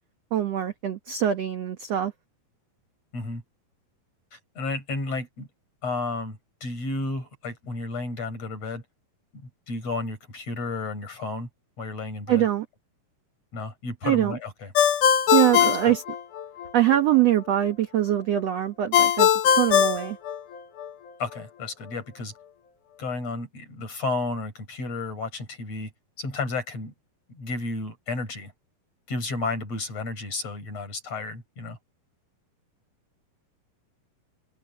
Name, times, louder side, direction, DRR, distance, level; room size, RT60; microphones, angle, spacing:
voice 1, 0.3-2.1 12.3-12.6 14.0-14.4 15.3-16.0 16.7-19.3 19.6-20.2, right 12 dB, 70° right, 1.6 m, -23 dB
voice 2, 4.3-5.5 5.8-8.8 9.7-11.5 11.8-12.5 13.5-14.7 15.9-16.0 21.2-22.3 23.0-25.9 26.2-26.9 27.3-28.5 29.1-31.8, left 3 dB, 40° left, 7.7 m, -32 dB
Ringtone, 14.7-16.7 18.9-20.9, left 9 dB, 60° left, 2.5 m, -21 dB
open air
omnidirectional pair, 4.7 m